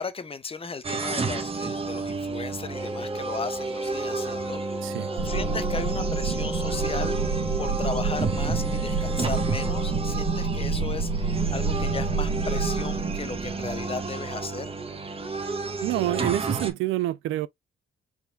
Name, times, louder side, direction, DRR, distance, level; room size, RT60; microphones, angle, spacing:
voice 1, 0.0-4.8 5.2-7.2 7.6-14.7, left 4 dB, 30° left, 0.9 m, -35 dB
sound 1, 0.8-16.7, right 4 dB, 30° right, 1.4 m, -32 dB
Wind instrument woodwind instrument, 2.7-10.0, equal, ahead, 1.3 m, -35 dB
sound 2, 5.2-14.4, right 4 dB, 55° right, 1.6 m, -28 dB
voice 2, 15.8-17.5, right 16 dB, 90° right, 0.5 m, -27 dB
4.5 x 4.1 x 2.3 m
cardioid pair, 90°, 20 cm